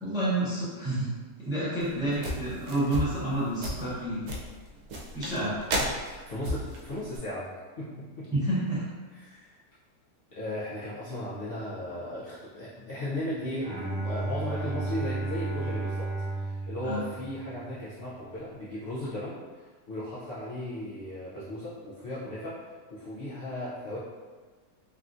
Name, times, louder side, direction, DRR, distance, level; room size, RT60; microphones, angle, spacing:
voice 1, 0.0-1.1 1.4-4.3 5.1-5.6 8.3-8.8 16.8-17.0, right 1 dB, 5° right, -10 dB, 0.4 m, -29 dB
sound 1, 1.8-7.2, equal, 80° right, 1.2 m, -34 dB
voice 2, 5.8-7.5 7.8-8.3 9.1-9.6 10.3-24.0, left 1 dB, 85° left, -10 dB, 0.5 m, -36 dB
Bowed string instrument, 13.6-17.8, right 2 dB, 40° right, 0.9 m, -33 dB
3.5 x 2.4 x 2.5 m, 1.4 s
omnidirectional pair, 1.7 m